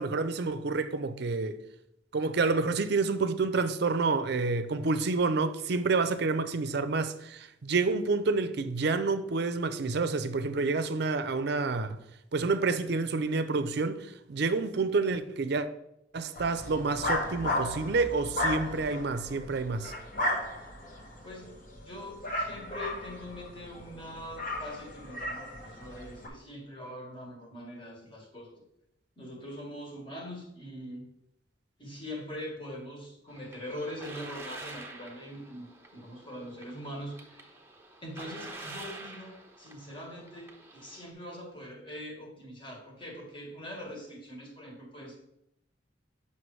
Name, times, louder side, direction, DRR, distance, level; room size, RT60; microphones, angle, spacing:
voice 1, 0.0-1.6 2.1-12.0 12.3-15.7 16.1-19.9, right 3 dB, 60° right, 0.5 m, -28 dB
sound 1, 16.3-26.3, left 1 dB, 45° left, 1.1 m, -35 dB
voice 2, 21.2-28.5 29.2-31.0 31.8-37.5 38.0-45.2, equal, 25° left, 1.5 m, -43 dB
sound 2, 33.3-41.1, right 2 dB, 15° right, 0.8 m, -47 dB
7.6 x 5.7 x 3.2 m
head